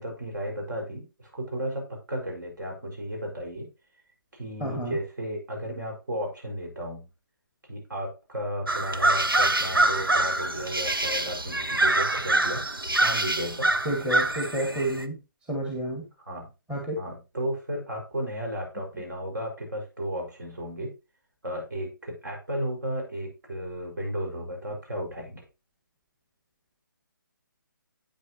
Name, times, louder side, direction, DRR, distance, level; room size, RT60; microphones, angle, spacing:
voice 1, 0.0-3.7 4.3-7.1 7.7-12.6 13.0-13.7 16.3-16.5 17.0-20.9 21.4-25.4, equal, 60° right, 2 dB, 5.3 m, -34 dB
voice 2, 4.6-5.0 13.8-15.2 15.5-16.0 16.7-17.0, right 1 dB, 10° right, 1 dB, 1.5 m, -29 dB
sound 1, 8.7-15.0, right 2 dB, 90° right, 1.0 m, -25 dB
9.4 x 8.8 x 3.0 m, 0.27 s
figure-of-eight pair, 145°, 11 cm